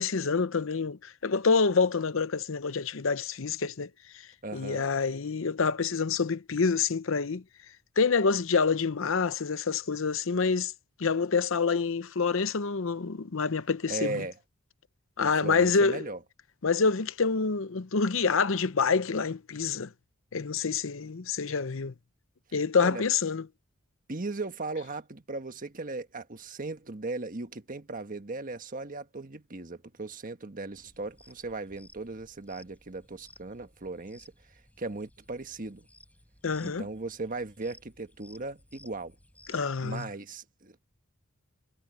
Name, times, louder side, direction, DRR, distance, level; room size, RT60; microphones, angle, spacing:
voice 1, 0.0-3.9 4.5-7.4 8.0-10.7 11.0-14.2 15.2-16.0 16.6-19.9 20.3-21.9 22.5-23.5 36.4-36.9 39.5-40.1, left 5 dB, 65° left, 0.7 m, -27 dB
voice 2, 4.4-4.9 13.9-14.3 15.2-16.2 22.8-23.0 24.1-35.9 36.6-39.1 39.8-40.8, right 3 dB, 40° right, 1.4 m, -37 dB
sound 1, 30.7-40.0, left 1 dB, 5° left, 7.5 m, -58 dB
head